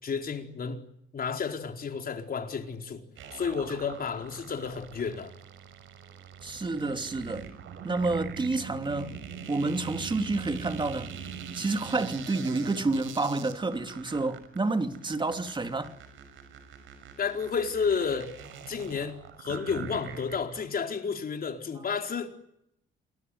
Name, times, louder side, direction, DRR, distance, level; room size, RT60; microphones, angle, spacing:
voice 1, 0.0-0.8 1.1-3.0 3.3-5.3 17.2-18.3 18.7-22.3, left 6 dB, 50° left, 4.5 m, -31 dB
sound 1, 3.2-20.6, right 7 dB, 85° right, 6.0 m, -43 dB
voice 2, 6.4-7.5 7.8-9.2 9.5-11.1 11.5-15.9, right 3 dB, 25° right, 2.7 m, -29 dB
28.5 x 21.5 x 9.5 m
cardioid pair, 90°, 20 cm